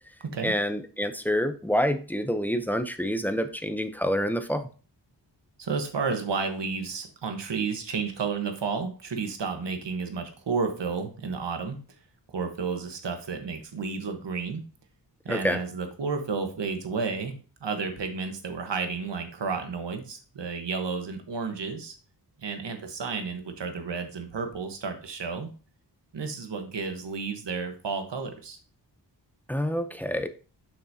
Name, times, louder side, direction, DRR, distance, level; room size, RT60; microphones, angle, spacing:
voice 1, 0.4-4.6 15.3-15.6 29.5-30.3, equal, 5° left, 9 dB, 0.6 m, -27 dB
voice 2, 5.6-11.8 12.3-14.6 15.2-17.3 17.6-21.9 22.4-25.5 26.1-28.6, right 5 dB, 75° right, 6 dB, 1.3 m, -32 dB
7.0 x 6.0 x 2.8 m, 0.37 s
wide cardioid pair, 90°, 43 cm